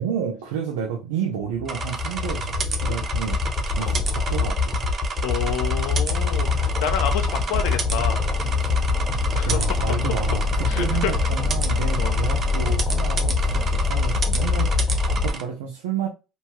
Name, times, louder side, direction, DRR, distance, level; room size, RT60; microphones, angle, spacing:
voice 1, 0.0-3.4 3.7-4.9 9.4-16.1, right 7 dB, 90° right, 0.5 m, -30 dB
sound 1, 1.6-15.3, left 4 dB, 30° left, 0.8 m, -24 dB
sound 2, 1.7-15.4, right 4 dB, 40° right, 0.5 m, -32 dB
voice 2, 5.2-8.3 9.3-10.0 10.7-11.2 12.0-12.2 14.1-14.2, left 8 dB, 80° left, 0.5 m, -29 dB
sound 3, 6.0-13.9, right 3 dB, 60° right, 1.2 m, -45 dB
2.7 x 2.3 x 2.9 m
supercardioid pair, 85°, 0 cm